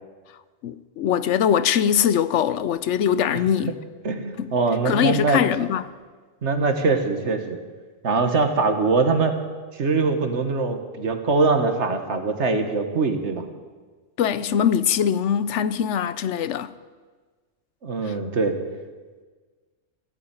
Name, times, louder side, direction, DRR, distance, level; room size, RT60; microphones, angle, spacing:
voice 1, 0.6-3.8 4.4-4.5 4.8-5.8 14.2-16.7 18.1-18.2, left 8 dB, 70° left, 0.9 m, -22 dB
voice 2, 4.0-5.4 6.4-7.6 8.0-9.4 9.7-13.4 17.8-18.5, right 4 dB, 65° right, 1.7 m, -22 dB
15.5 x 8.8 x 8.9 m
omnidirectional pair, 1.3 m